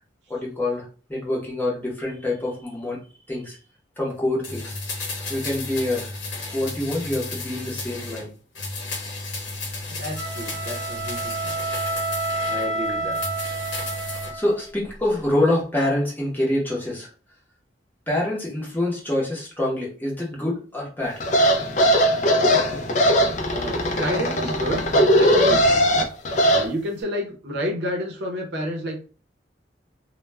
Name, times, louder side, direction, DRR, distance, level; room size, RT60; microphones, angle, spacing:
voice 1, 0.3-3.0 3.3-3.6 4.0-4.7 5.3-6.1 6.5-8.3 14.3-17.1 18.1-21.2, left 1 dB, 10° left, -4 dB, 0.7 m, -26 dB
sound 1, 4.4-8.3 8.6-12.7 13.1-14.4 14.7-14.8, left 2 dB, 80° left, 0.8 m, -33 dB
voice 2, 10.0-11.5 12.5-13.2 23.5-26.1 26.5-29.0, equal, 60° right, 1 dB, 0.6 m, -30 dB
sound 2, 10.2-14.6, right 2 dB, 20° right, 0.8 m, -29 dB
fan abuse, 21.2-26.6, equal, 40° left, 0.4 m, -19 dB
2.2 x 2.1 x 3.2 m, 0.39 s
head